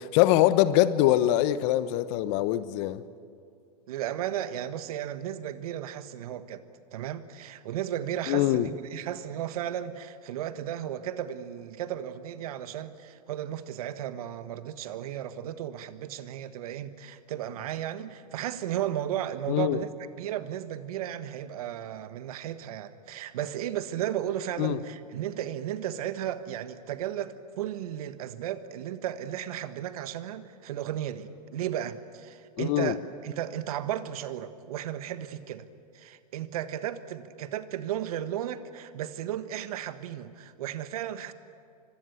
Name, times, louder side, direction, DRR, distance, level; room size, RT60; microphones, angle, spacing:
voice 1, 0.0-3.0 8.3-8.7 19.5-19.8 24.6-24.8 32.6-32.9, left 14 dB, 45° left, 1.1 m, -23 dB
voice 2, 3.9-6.6 6.9-33.0 33.2-35.7 35.9-41.3, right 11 dB, 60° right, 1.5 m, -34 dB
25.0 x 22.5 x 8.4 m
hypercardioid pair, 110°, 21 cm